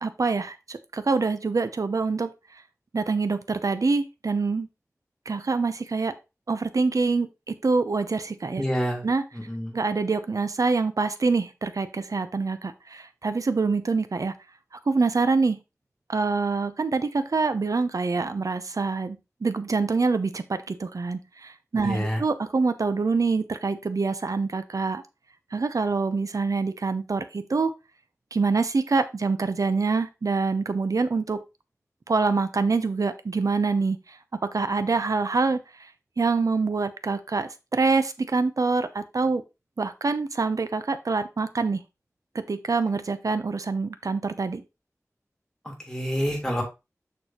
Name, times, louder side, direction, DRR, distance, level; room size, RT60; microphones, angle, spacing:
voice 1, 0.0-2.3 2.9-4.7 5.3-6.1 6.5-8.6 9.0-9.2 9.7-14.3 14.9-15.6 16.1-25.0 25.5-27.7 28.3-31.4 32.1-35.6 36.2-39.4 39.8-41.8 42.3-44.6, right 4 dB, 80° right, 11 dB, 0.7 m, -25 dB
voice 2, 8.6-9.0 9.3-9.8 21.8-22.2 45.6-46.6, equal, 10° left, 0 dB, 3.6 m, -28 dB
6.8 x 6.6 x 3.0 m, 0.25 s
wide cardioid pair, 50°, 6 cm